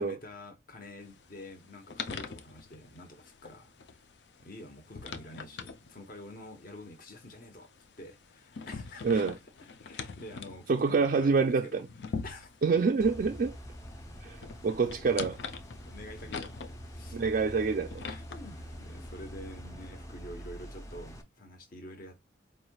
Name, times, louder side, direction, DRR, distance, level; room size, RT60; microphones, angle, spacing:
voice 1, 0.0-4.1 4.4-7.7 8.0-9.2 9.8-11.8 12.2-12.6 15.0-15.1 15.8-16.5 16.8-17.2 18.0-22.2, left 1 dB, 50° left, 1.0 m, -47 dB
sound 1, 1.0-19.3, left 5 dB, 65° left, 0.5 m, -45 dB
voice 2, 10.7-11.6 12.6-13.5 14.2-14.4 14.6-15.4 17.1-18.0, right 4 dB, 50° right, 0.3 m, -26 dB
sound 2, 13.0-21.2, equal, 20° left, 0.5 m, -45 dB
4.5 x 3.3 x 2.3 m
head